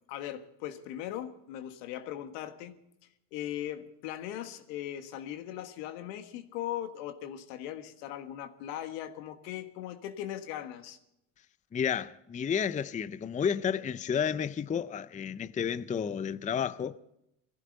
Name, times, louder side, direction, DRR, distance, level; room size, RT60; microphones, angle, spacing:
voice 1, 0.1-2.8 3.3-11.0, left 11 dB, 85° left, 1.6 m, -39 dB
voice 2, 11.7-17.0, left 7 dB, 15° left, 0.5 m, -31 dB
21.0 x 15.0 x 3.9 m
supercardioid pair, 85°, 47 cm